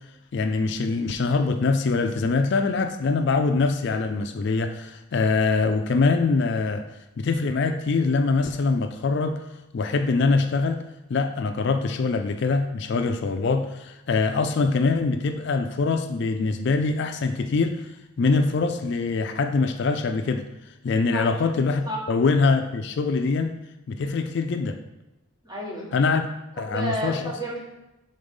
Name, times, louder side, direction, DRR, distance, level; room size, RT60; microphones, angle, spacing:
voice 1, 0.3-6.8 7.2-9.4 9.7-10.8 11.1-20.4 20.8-21.8 22.1-23.5 23.9-24.8 25.9-26.3 26.6-27.2, left 4 dB, 50° left, 6 dB, 0.3 m, -23 dB
voice 2, 21.1-21.4 21.8-22.0 25.4-25.9 26.6-27.6, equal, 15° right, -4 dB, 1.2 m, -31 dB
5.2 x 3.9 x 5.2 m, 0.96 s
head